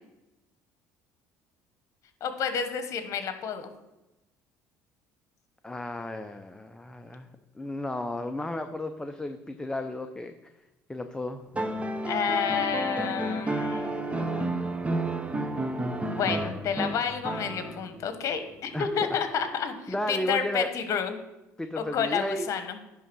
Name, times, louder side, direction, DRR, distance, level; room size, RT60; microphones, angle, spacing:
voice 1, 2.2-3.7 12.1-14.6 16.1-21.1 21.8-22.8, left 7 dB, 55° left, 8 dB, 1.2 m, -30 dB
voice 2, 5.6-7.3 7.5-10.4 10.9-11.4 18.7-19.1 19.9-20.7 21.6-22.5, left 1 dB, 10° left, 7 dB, 0.6 m, -33 dB
sound 1, 11.5-18.0 19.5-19.6, right 2 dB, 20° right, 0.9 m, -31 dB
10.5 x 3.8 x 6.1 m, 0.98 s
supercardioid pair, 80°, 6 cm